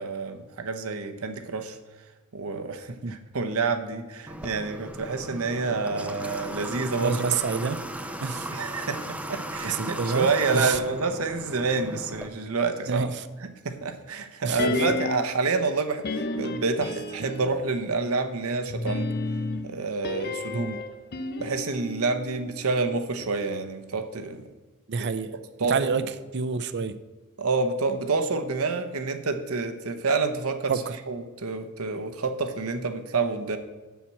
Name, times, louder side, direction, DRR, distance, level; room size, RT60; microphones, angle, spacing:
voice 1, 0.0-1.8 2.3-3.0 3.3-7.2 8.5-13.1 13.6-19.1 19.6-20.8 21.4-24.5 25.0-25.1 25.6-25.7 27.4-30.7 31.1-33.6, right 4 dB, 75° right, 7 dB, 0.9 m, -28 dB
Water / Water tap faucet, 4.3-12.3, right 1 dB, 5° right, 0.6 m, -37 dB
voice 2, 7.0-7.8 8.2-8.5 9.6-10.8 12.9-13.3 14.4-14.8 20.5-20.8 24.9-25.3 25.7-26.0 26.3-26.9 30.7-31.0, right 5 dB, 55° right, 13 dB, 0.5 m, -28 dB
sound 1, 14.6-15.4 16.0-17.7 18.7-22.9 23.2-23.3, left 3 dB, 45° left, 0.6 m, -32 dB
7.2 x 5.9 x 7.2 m, 1.2 s
head